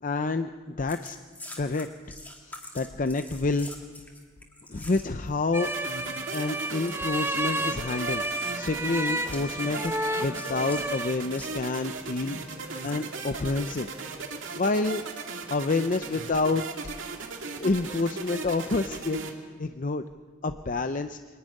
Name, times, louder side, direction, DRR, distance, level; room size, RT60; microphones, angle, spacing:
voice 1, 0.0-1.2 1.6-2.2 2.4-3.7 4.7-5.7 6.3-8.2 8.5-9.9 10.2-12.4 12.8-13.9 14.5-15.0 15.5-16.7 17.6-19.2 19.6-20.0 20.4-21.2, left 3 dB, 40° left, 8 dB, 0.6 m, -28 dB
sound 1, 0.9-5.3 5.7-7.7 8.0-8.3 9.3-10.8 11.3-11.6 12.5-13.8 14.4-14.6, left 2 dB, 10° left, 2.5 m, -46 dB
sound 2, 5.5-11.1, right 1 dB, 10° right, 0.7 m, -31 dB
sound 3, 5.6-19.3, right 4 dB, 80° right, 2.1 m, -37 dB
23.5 x 12.0 x 9.8 m, 1.5 s
head